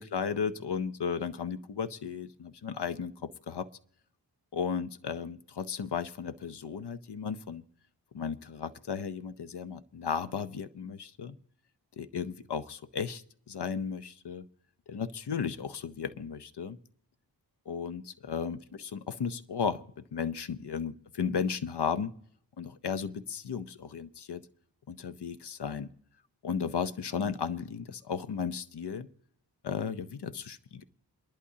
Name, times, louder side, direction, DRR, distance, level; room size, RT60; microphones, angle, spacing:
voice 1, 0.0-3.7 4.5-7.6 8.1-11.4 12.0-14.5 14.9-16.8 17.7-22.1 22.6-24.4 24.9-25.9 26.4-29.1 29.6-30.8, left 6 dB, 70° left, 12 dB, 0.8 m, -35 dB
28.5 x 11.5 x 2.8 m, 0.65 s
cardioid pair, 45°, 42 cm